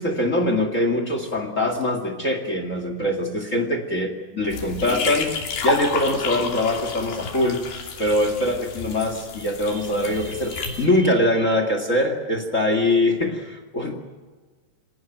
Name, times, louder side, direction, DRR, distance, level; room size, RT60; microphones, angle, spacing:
voice 1, 0.0-7.6 8.0-14.0, left 1 dB, 35° left, 6 dB, 1.3 m, -23 dB
sound 1, 4.5-10.9, left 5 dB, 65° left, 4.7 m, -30 dB
26.0 x 18.5 x 9.2 m, 1.4 s
omnidirectional pair, 4.8 m